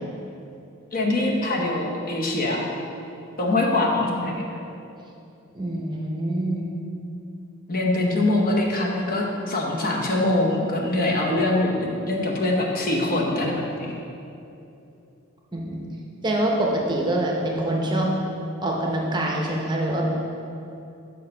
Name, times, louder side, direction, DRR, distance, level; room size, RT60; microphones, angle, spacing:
voice 1, 0.9-2.7 3.4-4.4 7.7-14.0, left 2 dB, 40° left, -1 dB, 0.8 m, -23 dB
voice 2, 5.5-6.6 15.5-15.8 16.2-18.1 18.6-20.0, right 1 dB, 20° right, -1 dB, 0.6 m, -25 dB
6.5 x 4.7 x 5.3 m, 2.7 s
head